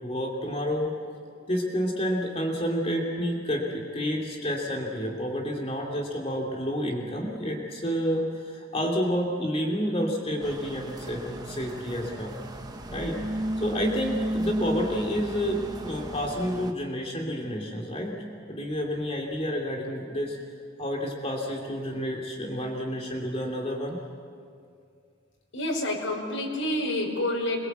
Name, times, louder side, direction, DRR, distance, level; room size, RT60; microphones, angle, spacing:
voice 1, 0.0-0.9 1.5-12.3 12.9-20.4 20.8-24.0, equal, 30° left, 0 dB, 2.7 m, -29 dB
sound 1, 10.4-16.7, right 1 dB, 20° right, 1.1 m, -34 dB
voice 2, 25.5-27.7, left 1 dB, 75° left, 0 dB, 5.5 m, -28 dB
26.5 x 22.5 x 8.1 m, 2.3 s
head